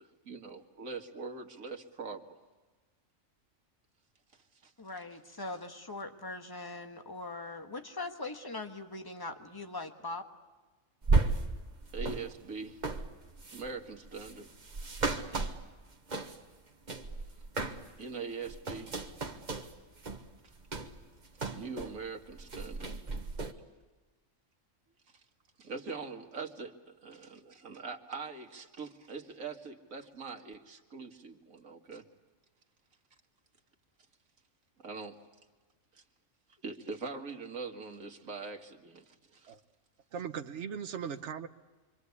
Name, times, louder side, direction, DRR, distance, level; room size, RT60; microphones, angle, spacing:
voice 1, 0.0-2.4 4.6-4.7 11.9-12.8 13.5-14.5 18.0-18.9 21.5-22.9 25.6-32.1 34.8-35.2 35.9-36.0 36.6-39.5, right 4 dB, 85° right, 3 dB, 2.1 m, -42 dB
voice 2, 4.8-10.2, left 2 dB, 15° left, 5 dB, 1.5 m, -41 dB
sound 1, 11.0-16.6 16.9-18.0 18.3-22.0 22.3-23.5, right 3 dB, 35° right, 1.4 m, -34 dB
voice 3, 40.1-41.5, right 7 dB, 60° right, 8 dB, 1.3 m, -38 dB
27.0 x 24.5 x 8.4 m, 1.3 s
omnidirectional pair, 1.4 m